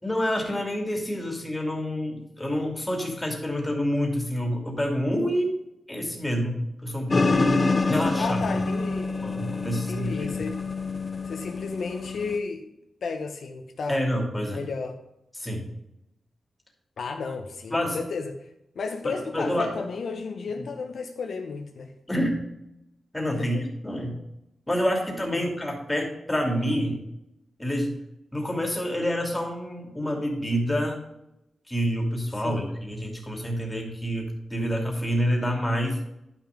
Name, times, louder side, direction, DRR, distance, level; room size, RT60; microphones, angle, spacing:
voice 1, 0.0-5.5 5.9-8.7 9.2-10.3 13.9-14.6 15.3-15.7 17.7-18.0 19.0-19.7 22.1-22.5 23.1-24.2 24.7-27.0 27.6-27.9 28.3-31.0 31.7-36.0, equal, 10° left, 1 dB, 2.7 m, -28 dB
sound 1, 7.1-12.4, left 3 dB, 35° left, 0.5 m, -27 dB
voice 2, 8.2-9.1 9.7-10.6 11.3-12.7 13.0-14.0 14.6-15.0 17.0-18.5 18.7-21.9 23.4-23.6 25.3-25.5 32.3-32.7, left 4 dB, 70° left, 5 dB, 0.9 m, -33 dB
11.0 x 5.9 x 5.2 m, 0.84 s
wide cardioid pair, 110°, 0 cm